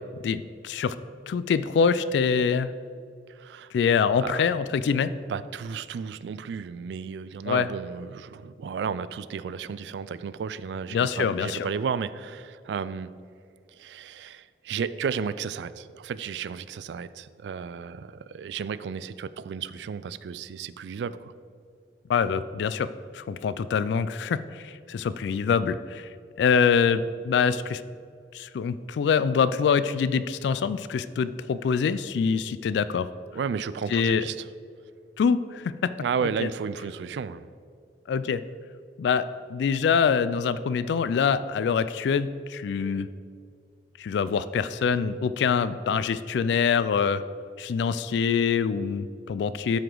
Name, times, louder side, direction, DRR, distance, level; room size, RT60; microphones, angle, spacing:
voice 1, 0.2-1.0 1.3-2.7 3.7-5.1 7.5-7.7 10.9-11.7 22.1-22.9 23.1-26.1 26.4-27.8 28.3-33.1 33.9-34.2 35.2-35.7 36.4-36.5 38.1-38.4 39.0-39.2 39.5-43.1 44.0-47.2 47.6-49.8, left 6 dB, 85° left, 14 dB, 0.3 m, -25 dB
voice 2, 3.3-3.7 4.2-4.4 5.3-13.1 13.7-21.3 33.3-34.5 36.0-37.5, right 6 dB, 85° right, 15 dB, 0.3 m, -33 dB
12.5 x 4.9 x 3.8 m, 2.3 s
head